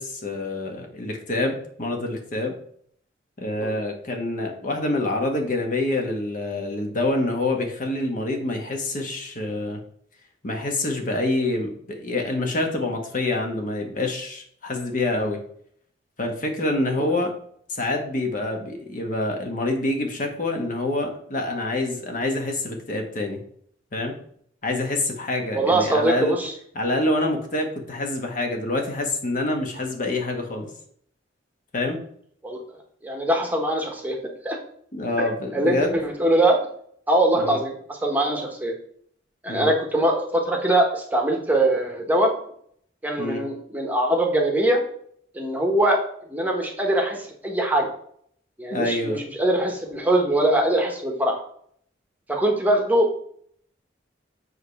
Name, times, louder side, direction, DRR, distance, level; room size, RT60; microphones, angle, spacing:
voice 1, 0.0-2.6 3.4-9.8 10.4-15.4 16.2-17.3 17.7-23.4 23.9-24.2 24.6-26.3 26.7-30.7 31.7-32.0 34.9-36.0 37.3-37.6 39.5-39.7 43.2-43.4 48.7-49.2, left 2 dB, 45° left, 3 dB, 1.3 m, -26 dB
voice 2, 25.5-26.5 32.4-32.6 33.0-34.2 34.4-34.6 35.2-35.8 36.0-36.6 37.1-38.7 39.4-42.3 43.0-44.8 45.3-46.0 46.3-47.9 48.6-51.4 52.3-53.1, right 1 dB, 10° right, 1 dB, 1.0 m, -22 dB
7.7 x 3.2 x 5.7 m, 0.63 s
head